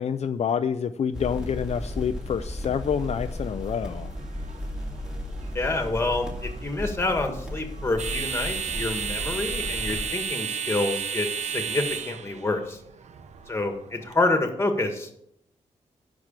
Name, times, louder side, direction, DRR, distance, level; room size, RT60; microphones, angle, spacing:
voice 1, 0.0-4.1, left 7 dB, 55° left, 8 dB, 0.5 m, -27 dB
sound 1, 1.1-10.1, left 1 dB, 5° right, 2.3 m, -35 dB
sound 2, 2.8-14.1, right 6 dB, 65° right, 0.8 m, -34 dB
voice 2, 5.5-6.3 6.6-12.8 13.5-15.1, left 2 dB, 20° left, 5 dB, 1.7 m, -27 dB
9.5 x 6.1 x 7.5 m, 0.74 s
wide cardioid pair, 140°, 13 cm